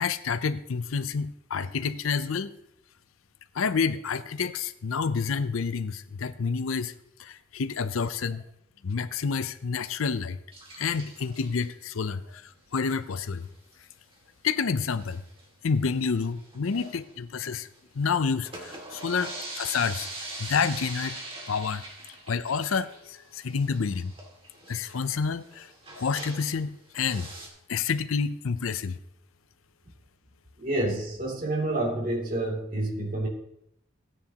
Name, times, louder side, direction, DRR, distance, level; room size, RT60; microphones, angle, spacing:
voice 1, 0.0-2.5 3.5-6.9 7.2-8.4 8.8-10.4 10.8-13.5 14.4-15.2 15.6-17.7 17.9-20.1 20.4-21.2 21.5-21.8 22.3-24.1 24.7-25.7 26.0-29.0, left 5 dB, 85° left, 13 dB, 0.5 m, -29 dB
sound 1, 10.5-11.7 12.9-13.2 13.4-13.5 13.7-13.8 14.1-14.2 14.8-15.4 15.9-17.8 18.3-26.6 27.0-27.5, right 2 dB, 25° right, 2.3 m, -42 dB
voice 2, 30.6-33.3, right 1 dB, 40° right, -3 dB, 2.8 m, -28 dB
16.0 x 9.9 x 2.9 m, 0.78 s
head